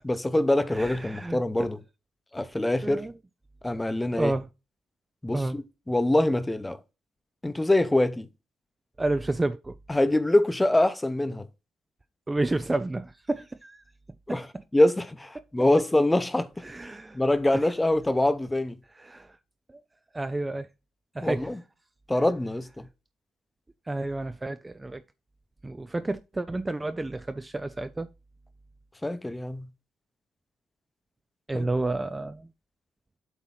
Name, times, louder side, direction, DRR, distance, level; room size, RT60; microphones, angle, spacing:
voice 1, 0.0-1.8 2.3-3.1 3.6-4.3 5.2-6.8 7.4-8.3 9.9-11.5 14.3-14.4 14.7-16.6 17.1-18.8 21.2-21.6 22.1-22.8 29.0-29.7 31.5-31.7, left 1 dB, 10° left, 0.9 m, -24 dB
voice 2, 0.7-1.7 2.8-3.2 4.2-4.5 5.3-5.6 9.0-9.8 12.3-13.8 14.3-14.4 16.6-17.2 17.5-17.7 18.9-19.4 19.7-19.8 20.1-20.7 21.1-21.6 23.9-25.0 25.6-28.1 31.5-32.5, right 2 dB, 15° right, 0.4 m, -30 dB
8.0 x 3.0 x 5.7 m
cardioid pair, 90°, 0 cm